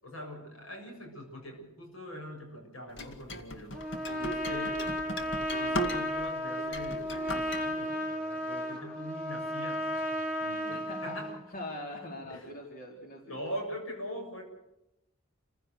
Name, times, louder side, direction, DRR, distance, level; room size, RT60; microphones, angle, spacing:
voice 1, 0.0-3.8 4.1-4.8 5.6-11.4 12.3-12.5 13.2-14.4, equal, 90° left, 3 dB, 7.3 m, -42 dB
sound 1, 3.0-6.3 6.6-7.6, equal, 65° left, 2.1 m, -37 dB
Trumpet, 3.7-11.4, equal, 10° left, 4.9 m, -34 dB
voice 2, 10.7-13.4, left 1 dB, 45° left, 1 dB, 3.9 m, -43 dB
29.0 x 16.0 x 6.6 m, 0.89 s
head